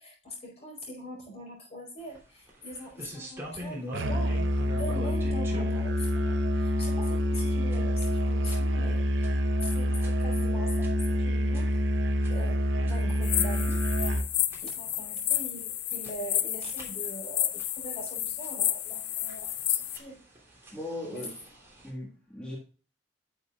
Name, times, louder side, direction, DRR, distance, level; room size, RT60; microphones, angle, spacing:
voice 1, 0.0-4.4 4.8-13.9 14.6-20.2 21.1-21.3, equal, 35° left, -1 dB, 4.5 m, -42 dB
sound 1, 2.0-21.9, equal, 15° right, 3.4 m, -47 dB
Musical instrument, 3.9-14.3, equal, 80° right, 0.8 m, -27 dB
sound 2, 13.2-20.0, left 12 dB, 65° left, 0.5 m, -31 dB
voice 2, 20.7-21.3 21.8-22.6, left 1 dB, 5° left, -4 dB, 1.7 m, -38 dB
11.0 x 6.7 x 2.4 m, 0.37 s
head